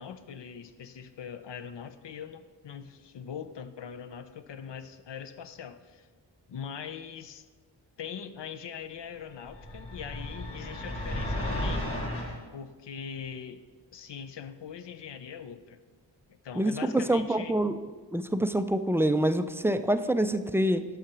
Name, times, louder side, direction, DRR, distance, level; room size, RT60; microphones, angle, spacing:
voice 1, 0.0-6.1 6.5-7.4 8.0-11.9 12.5-13.6 13.9-15.8 16.3-17.6, left 7 dB, 65° left, 10 dB, 0.6 m, -42 dB
sound 1, 9.5-12.4, left 1 dB, 30° left, 2.2 m, -33 dB
voice 2, 16.6-17.8 18.1-20.9, right 1 dB, 5° right, 10 dB, 0.3 m, -26 dB
5.8 x 5.7 x 6.0 m, 1.4 s
cardioid pair, 50°, 46 cm